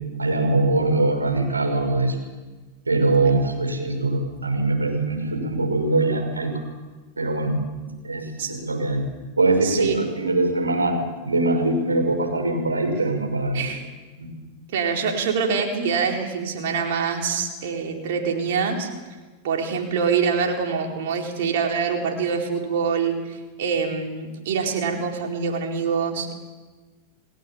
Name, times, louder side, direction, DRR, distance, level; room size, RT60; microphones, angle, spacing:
voice 1, 0.2-2.2 2.9-6.5 7.2-7.6 8.0-9.0 9.4-11.0 11.2-13.6, right 2 dB, 80° right, 3 dB, 6.1 m, -22 dB
voice 2, 9.6-10.0 13.5-13.9 14.7-18.9 19.4-26.4, right 6 dB, 55° right, 2 dB, 4.5 m, -25 dB
29.5 x 18.5 x 7.3 m, 1.3 s
figure-of-eight pair, 90°, 0 cm